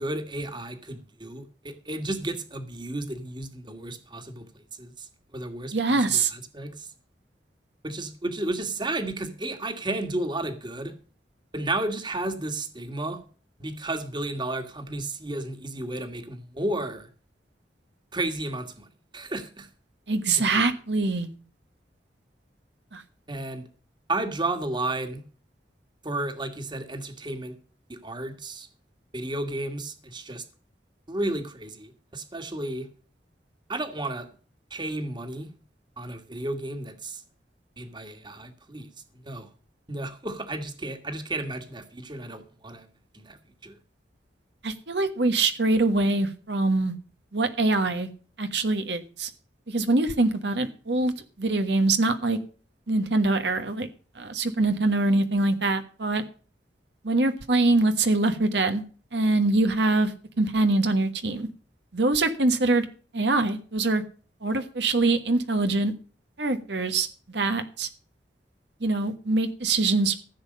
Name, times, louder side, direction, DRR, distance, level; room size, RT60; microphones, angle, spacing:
voice 1, 0.0-4.5 4.8-6.9 7.8-10.9 11.5-13.2 13.6-17.1 18.1-19.7 20.5-20.6 23.3-23.6 24.1-25.2 26.0-27.5 27.9-28.7 29.1-30.4 31.1-32.9 33.7-34.3 34.7-35.5 36.0-37.2 37.8-38.9 39.2-39.5 39.9-42.9 43.1-43.4 43.6-43.8, right 2 dB, 25° right, 1.8 m, -33 dB
voice 2, 5.7-6.3 20.1-21.3 22.9-23.0 44.6-46.9 47.3-48.1 48.4-49.3 49.7-52.4 52.9-53.9 54.1-56.2 57.0-58.8 59.1-61.5 61.9-62.9 63.1-64.0 64.4-65.9 66.4-67.9 68.8-70.3, right 2 dB, 75° right, 1.3 m, -24 dB
15.0 x 7.5 x 5.4 m
head